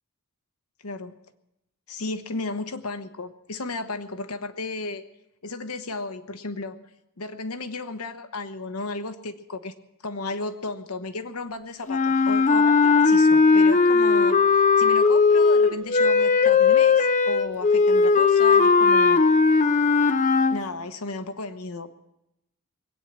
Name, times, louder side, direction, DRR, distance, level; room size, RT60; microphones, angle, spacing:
voice 1, 0.8-1.2 1.9-5.0 5.4-6.8 7.2-9.7 10.0-19.2 20.5-21.9, left 3 dB, 75° left, 8 dB, 1.1 m, -34 dB
sound 1, 11.9-20.6, left 4 dB, 35° left, 0.6 m, -18 dB
21.0 x 9.2 x 7.5 m, 0.86 s
head